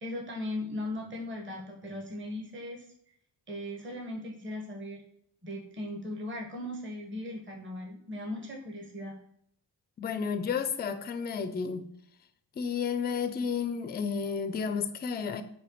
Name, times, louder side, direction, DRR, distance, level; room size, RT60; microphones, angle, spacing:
voice 1, 0.0-2.8 3.5-5.0 5.4-9.1, left 1 dB, 25° right, 0 dB, 1.1 m, -38 dB
voice 2, 10.0-11.9 12.6-15.4, left 6 dB, 25° left, 11 dB, 0.4 m, -32 dB
4.9 x 2.2 x 3.0 m, 0.71 s
hypercardioid pair, 45°, 47 cm